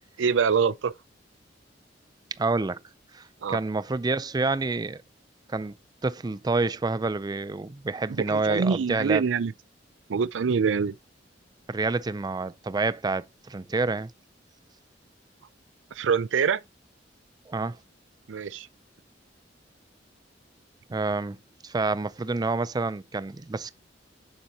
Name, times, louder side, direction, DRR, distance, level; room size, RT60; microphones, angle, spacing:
voice 1, 0.2-0.9 3.4-3.6 8.1-9.5 10.1-10.9 15.9-16.6 18.3-18.7, right 6 dB, 90° right, 0.4 m, -25 dB
voice 2, 2.4-2.8 3.1-5.0 5.5-5.8 6.0-9.2 11.7-14.1 17.5-17.8 20.9-21.4 21.6-23.7, right 3 dB, 20° right, 0.4 m, -28 dB
7.8 x 6.9 x 2.8 m
head